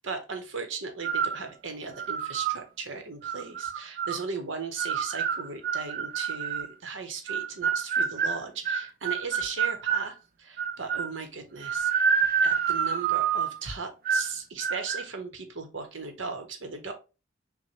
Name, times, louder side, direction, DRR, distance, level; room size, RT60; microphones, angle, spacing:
voice 1, 0.0-11.9 12.4-16.9, right 4 dB, 80° right, 7 dB, 0.9 m, -37 dB
sound 1, 1.0-1.4 2.0-2.6 3.2-4.2 4.8-6.7 7.3-10.1 10.6-11.1 11.6-13.6 14.0-14.3 14.6-15.0, right 7 dB, 50° right, 0.4 m, -28 dB
6.0 x 2.1 x 2.8 m, 0.30 s
head